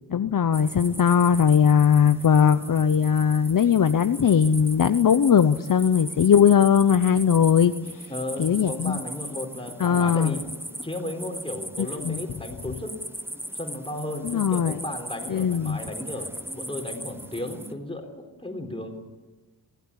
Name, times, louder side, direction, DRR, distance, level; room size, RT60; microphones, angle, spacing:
voice 1, 0.1-7.7 8.4-9.0 9.8-10.3 11.8-12.2 14.2-14.8 15.3-15.8, left 7 dB, 50° left, 10 dB, 0.7 m, -19 dB
sound 1, 0.5-17.7, right 1 dB, 5° right, 1.1 m, -39 dB
voice 2, 8.1-10.5 10.8-13.0 13.5-19.0, left 1 dB, 15° left, 3 dB, 3.8 m, -34 dB
24.0 x 16.5 x 9.9 m, 1.2 s
wide cardioid pair, 140°, 41 cm